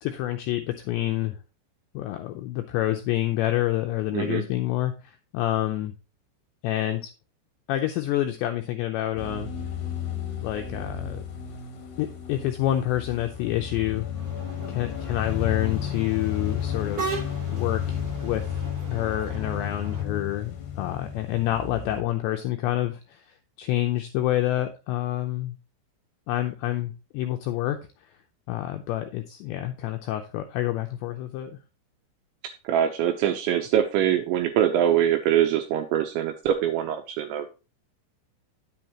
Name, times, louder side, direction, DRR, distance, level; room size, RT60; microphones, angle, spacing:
voice 1, 0.0-1.4 1.9-5.9 6.6-7.0 7.7-9.5 10.4-11.2 12.0-14.1 14.7-17.1 17.5-18.6 18.9-23.2 23.6-25.6 26.3-27.8 28.5-31.5, left 14 dB, 85° left, 5 dB, 2.5 m, -28 dB
voice 2, 4.1-4.4 32.4-37.5, right 10 dB, 85° right, 6 dB, 2.7 m, -24 dB
sound 1, 9.2-22.0, left 8 dB, 70° left, 1.8 m, -32 dB
sound 2, 14.1-20.0, right 4 dB, 50° right, 1.3 m, -38 dB
10.0 x 7.7 x 2.9 m, 0.31 s
omnidirectional pair, 6.0 m